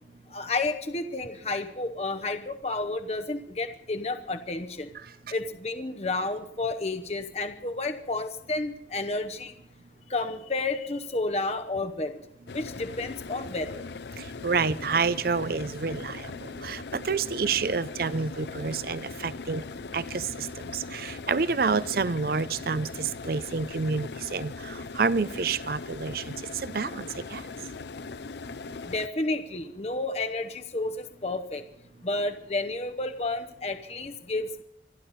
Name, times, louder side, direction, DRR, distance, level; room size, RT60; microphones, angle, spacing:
voice 1, 0.3-4.9 5.3-9.5 10.1-12.2 12.5-13.9 28.8-31.6 32.0-34.6, left 2 dB, 35° left, 7 dB, 0.8 m, -31 dB
sound 1, 12.5-29.1, left 4 dB, 65° left, 0.5 m, -40 dB
voice 2, 14.4-19.6 19.9-27.4, right 5 dB, 50° right, 17 dB, 0.5 m, -29 dB
26.5 x 11.5 x 4.1 m, 0.71 s
head